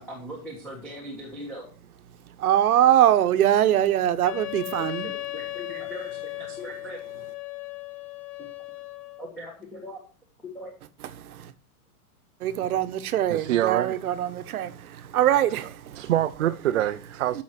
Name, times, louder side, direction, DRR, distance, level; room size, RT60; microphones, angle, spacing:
voice 1, 0.0-1.7 4.8-7.0 8.4-8.5 9.2-10.0 10.4-10.7, equal, 5° left, 1.3 m, -40 dB
voice 2, 2.1-5.1 11.2-11.5 12.4-16.1 16.7-16.8 17.3-17.4, right 11 dB, 70° right, 1.2 m, -23 dB
Wind instrument woodwind instrument, 4.2-9.3, left 17 dB, 85° left, 1.9 m, -36 dB
voice 3, 13.3-14.0 16.0-17.4, right 12 dB, 55° right, 0.6 m, -25 dB
14.5 x 6.2 x 4.4 m
supercardioid pair, 175°, 45 cm